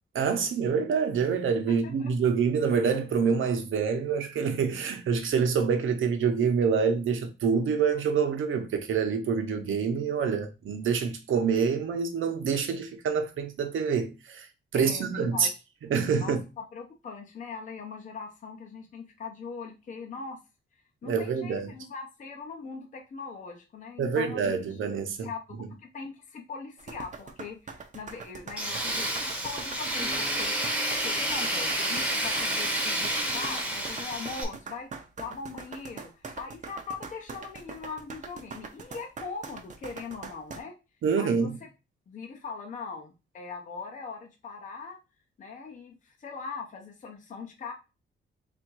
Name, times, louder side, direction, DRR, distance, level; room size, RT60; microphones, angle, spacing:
voice 1, 0.1-14.5 14.7-15.5 15.9-16.4 21.0-21.7 24.0-25.3 41.0-41.6, right 6 dB, 75° right, 0.8 m, -26 dB
voice 2, 1.7-2.1 14.7-15.5 16.2-20.4 21.0-24.8 25.2-25.4 25.8-40.8 41.2-41.7 42.1-45.0 45.4-47.7, left 5 dB, 40° left, 0.6 m, -41 dB
sound 1, 26.8-40.6, right 5 dB, 40° right, 0.6 m, -42 dB
Tools, 28.6-34.4, right 1 dB, 5° right, 0.8 m, -29 dB
3.5 x 2.5 x 4.5 m
wide cardioid pair, 165°, 20 cm